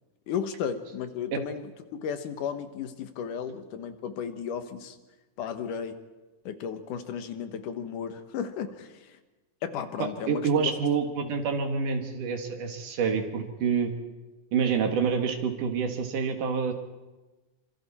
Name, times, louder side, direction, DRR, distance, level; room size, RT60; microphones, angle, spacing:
voice 1, 0.3-5.0 5.4-6.0 6.5-9.2 9.6-10.7 11.2-11.3, left 7 dB, 85° left, 8 dB, 2.9 m, -34 dB
voice 2, 10.0-13.9 14.5-16.7, right 6 dB, 85° right, 4 dB, 3.5 m, -27 dB
26.5 x 25.5 x 4.3 m, 1.2 s
omnidirectional pair, 3.5 m